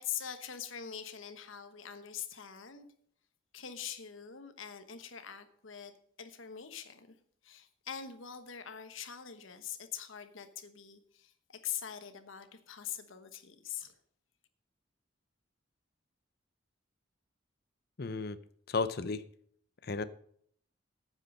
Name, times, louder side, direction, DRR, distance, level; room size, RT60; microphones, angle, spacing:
voice 1, 0.0-2.9 3.5-7.2 7.4-14.0, left 9 dB, 85° left, 9 dB, 1.1 m, -43 dB
voice 2, 18.0-18.4 18.7-19.2 19.9-20.0, left 4 dB, 50° left, 14 dB, 0.6 m, -33 dB
9.5 x 8.3 x 5.5 m, 0.63 s
head